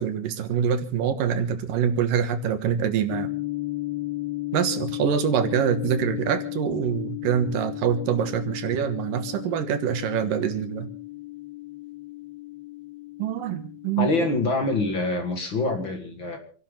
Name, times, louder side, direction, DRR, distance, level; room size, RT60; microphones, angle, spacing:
voice 1, 0.0-3.3 4.5-10.9 13.2-14.4, right 8 dB, 85° right, 9 dB, 3.0 m, -25 dB
sound 1, 3.1-14.4, left 18 dB, 70° left, 1.7 m, -34 dB
voice 2, 14.0-16.4, left 2 dB, 40° left, 4 dB, 2.1 m, -25 dB
27.5 x 12.0 x 3.8 m, 0.43 s
omnidirectional pair, 3.8 m